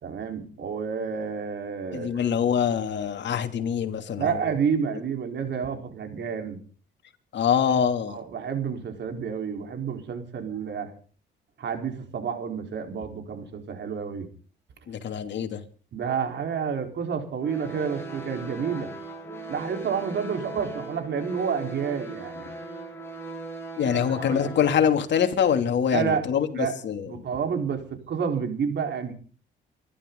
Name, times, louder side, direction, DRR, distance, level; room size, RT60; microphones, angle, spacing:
voice 1, 0.0-2.1 4.2-6.6 8.1-10.9 11.6-14.3 15.9-18.9 19.5-22.5 23.9-24.5 25.9-26.2 26.6-26.7 27.1-29.1, right 6 dB, 60° right, 4.4 m, -29 dB
voice 2, 1.9-4.5 7.3-8.2 14.9-15.6 23.8-27.1, left 8 dB, 65° left, 2.9 m, -24 dB
sound 1, 17.4-24.8, right 2 dB, 10° left, 7.7 m, -38 dB
28.5 x 12.5 x 4.0 m
cardioid pair, 90°, 20 cm